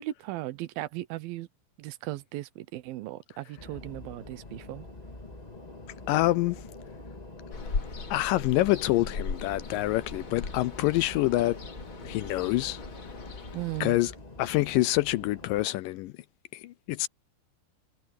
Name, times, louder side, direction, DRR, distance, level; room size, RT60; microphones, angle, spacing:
voice 1, 0.0-1.5 1.8-4.9 13.5-14.0, right 16 dB, 80° right, 2.6 m, -37 dB
sound 1, 3.6-15.7, left 2 dB, 20° left, 1.3 m, -45 dB
voice 2, 6.1-6.7 8.1-11.6 12.0-12.8 13.8-16.1 16.5-17.1, left 17 dB, 80° left, 2.0 m, -26 dB
Ocean, 7.5-13.8, left 4 dB, 40° left, 2.8 m, -39 dB
omnidirectional pair, 4.2 m